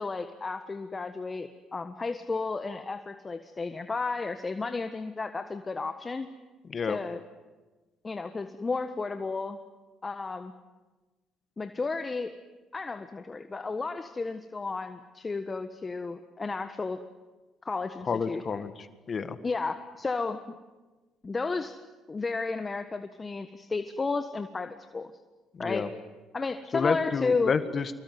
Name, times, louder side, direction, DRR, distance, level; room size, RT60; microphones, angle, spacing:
voice 1, 0.0-6.3 6.9-7.2 8.0-9.6 10.0-10.5 11.6-12.3 12.7-17.0 17.6-18.6 19.4-20.6 21.2-21.8 22.1-25.1 25.6-25.9 26.3-27.5, left 4 dB, 30° left, 8 dB, 1.4 m, -33 dB
voice 2, 18.1-19.4 25.5-25.9 26.7-28.0, left 5 dB, 45° left, 11 dB, 1.7 m, -30 dB
26.0 x 22.5 x 9.5 m, 1.2 s
supercardioid pair, 70°, 0 cm